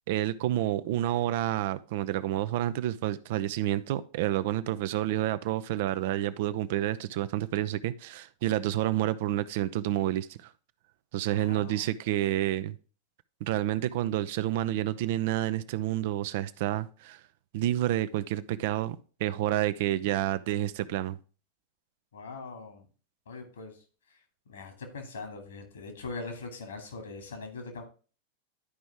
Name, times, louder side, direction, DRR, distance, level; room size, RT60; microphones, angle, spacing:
voice 1, 0.1-10.5 11.1-12.8 13.4-17.2 17.5-21.2, right 13 dB, 50° right, 0.5 m, -29 dB
voice 2, 11.3-11.9 22.1-22.9 23.3-23.8 24.1-24.2 24.5-27.8, left 3 dB, 65° left, 2.4 m, -41 dB
11.0 x 5.1 x 3.5 m
figure-of-eight pair, 90°, 0 cm